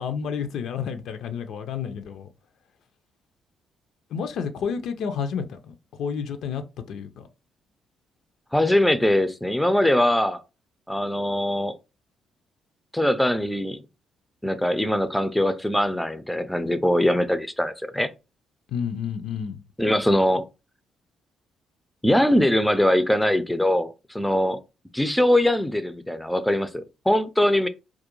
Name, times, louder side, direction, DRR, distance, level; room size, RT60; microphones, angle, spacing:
voice 1, 0.0-2.3 4.1-6.6 6.9-7.2 18.7-19.6, left 7 dB, 75° left, 0.4 m, -30 dB
voice 2, 8.5-10.4 10.9-11.8 12.9-13.8 14.4-18.1 19.8-20.4 22.0-24.6 24.9-27.7, left 1 dB, 5° left, 0.3 m, -22 dB
2.3 x 2.1 x 2.9 m
cardioid pair, 90°, 0 cm